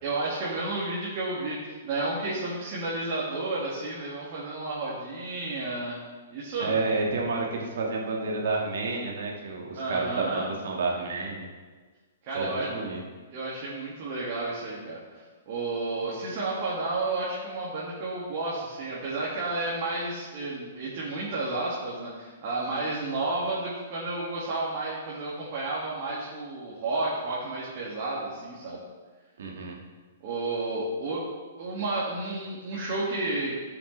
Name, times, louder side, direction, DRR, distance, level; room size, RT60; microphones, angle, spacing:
voice 1, 0.0-6.0 6.3-6.7 9.7-10.5 12.2-12.7 13.3-28.8 30.2-31.3 31.6-33.7, right 2 dB, 45° right, -6 dB, 2.0 m, -31 dB
voice 2, 6.6-11.5 12.3-13.0 29.4-29.8, right 3 dB, 60° right, -1 dB, 1.8 m, -30 dB
13.0 x 5.8 x 3.3 m, 1.4 s
figure-of-eight pair, 115°, 0 cm